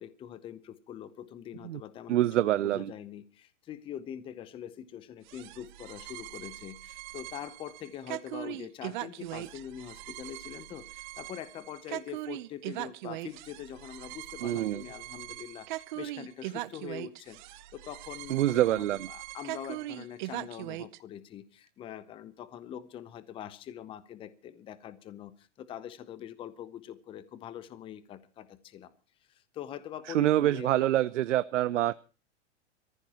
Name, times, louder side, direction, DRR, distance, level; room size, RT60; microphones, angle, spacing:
voice 1, 0.0-2.2 2.5-28.9 29.3-30.9, left 10 dB, 15° left, 15 dB, 0.7 m, -44 dB
voice 2, 2.1-2.9 14.4-14.8 18.3-19.1 30.1-31.9, right 13 dB, 85° right, 15 dB, 0.6 m, -26 dB
sound 1, 5.3-21.0, right 17 dB, 40° right, 0.7 m, -41 dB
24.5 x 14.5 x 2.9 m, 0.34 s
hypercardioid pair, 150°, 36 cm